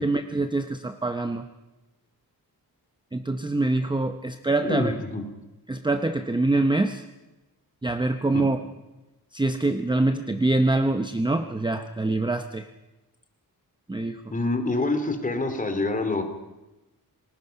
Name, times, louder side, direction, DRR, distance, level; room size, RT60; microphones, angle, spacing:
voice 1, 0.0-1.5 3.1-4.9 5.7-7.0 7.8-8.6 9.3-12.7 13.9-14.2, right 2 dB, 10° right, 8 dB, 0.8 m, -25 dB
voice 2, 4.6-5.2 8.3-8.4 14.3-16.2, left 2 dB, 20° left, 7 dB, 2.7 m, -26 dB
28.5 x 19.0 x 5.8 m, 1.1 s
wide cardioid pair, 155°, 37 cm